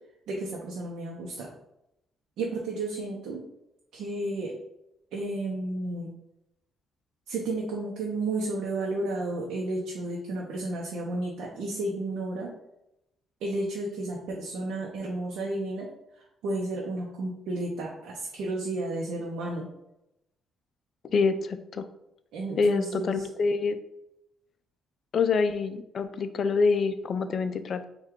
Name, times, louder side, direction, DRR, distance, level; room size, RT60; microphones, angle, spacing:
voice 1, 0.3-1.5 2.4-3.4 3.9-4.5 5.1-6.1 7.3-12.5 13.4-15.9 16.4-19.7 22.3-23.3, right 2 dB, 85° right, -2 dB, 0.6 m, -32 dB
voice 2, 21.1-21.9 22.6-23.8 25.1-27.8, left 4 dB, 55° left, 10 dB, 0.4 m, -26 dB
4.5 x 2.3 x 3.5 m, 0.85 s
cardioid pair, 90°, 0 cm